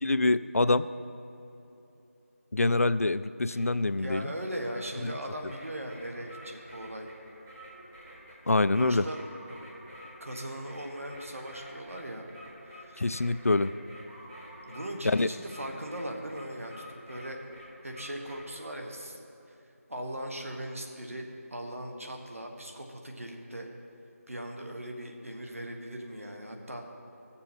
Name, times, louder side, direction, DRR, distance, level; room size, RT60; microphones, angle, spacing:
voice 1, 0.0-0.9 2.5-4.3 5.0-5.1 8.5-9.0 13.0-13.7 15.1-15.3, left 2 dB, 70° left, 14 dB, 0.4 m, -25 dB
voice 2, 3.5-7.1 8.8-9.2 10.2-12.2 12.7-13.1 14.7-17.4 17.8-19.2 19.9-23.7 24.3-26.9, right 1 dB, 65° right, 2 dB, 1.5 m, -39 dB
sound 1, 4.5-18.6, equal, 5° right, 0.8 m, -49 dB
15.5 x 7.1 x 4.4 m, 2.9 s
figure-of-eight pair, 170°, 8 cm